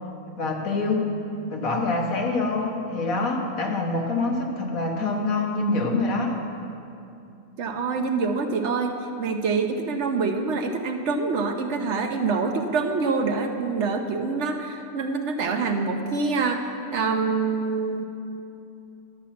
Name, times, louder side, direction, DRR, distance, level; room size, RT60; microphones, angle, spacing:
voice 1, 0.4-1.2 1.5-6.4, left 3 dB, 75° left, 1 dB, 1.6 m, -25 dB
voice 2, 7.6-16.6 16.9-18.0, right 4 dB, 60° right, 5 dB, 0.9 m, -26 dB
11.0 x 7.3 x 5.8 m, 2.7 s
omnidirectional pair, 1.5 m